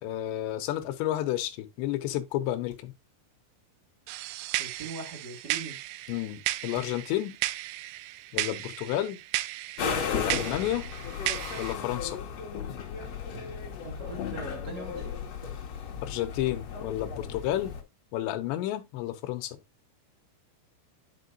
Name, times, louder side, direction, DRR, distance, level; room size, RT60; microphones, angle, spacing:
voice 1, 0.0-2.9 6.1-7.4 8.3-9.2 10.1-10.9 11.6-12.2 16.0-17.8 18.1-19.6, left 13 dB, 75° left, 2.8 m, -31 dB
sound 1, 0.8-0.9 2.7-2.9 4.8-5.0 6.7-7.1 8.3-8.5 9.9-10.3 11.9-12.1 13.3-13.6 15.4-15.6, right 3 dB, 15° right, 1.7 m, -48 dB
sound 2, 4.1-11.7, right 17 dB, 80° right, 2.8 m, -35 dB
voice 2, 4.6-5.8 13.8-15.1, right 2 dB, 35° right, 1.7 m, -41 dB
sound 3, 9.8-17.8, left 7 dB, 60° left, 1.7 m, -35 dB
10.5 x 5.8 x 2.6 m
omnidirectional pair, 5.7 m